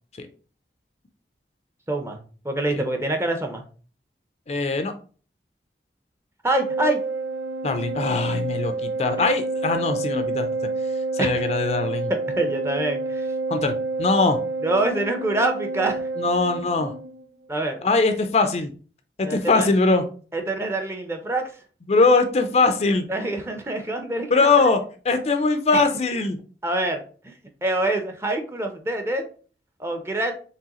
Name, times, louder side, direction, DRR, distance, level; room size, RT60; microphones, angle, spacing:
voice 1, 1.9-2.2 2.4-3.6 6.4-7.0 9.2-9.3 11.2-11.3 12.1-13.3 14.6-16.1 17.5-17.8 19.2-19.7 20.3-21.5 23.1-24.5 25.7-25.9 26.6-27.3 27.6-29.2 29.8-30.3, right 2 dB, 15° right, 5 dB, 0.5 m, -25 dB
voice 2, 4.5-4.9 7.6-10.5 11.1-12.1 13.5-14.4 16.2-16.9 17.8-18.7 19.2-20.1 21.9-23.0 24.3-26.4, left 3 dB, 35° left, 7 dB, 0.4 m, -21 dB
Organ, 6.5-17.3, right 3 dB, 90° right, 0.4 m, -28 dB
4.6 x 3.4 x 2.9 m, 0.40 s
head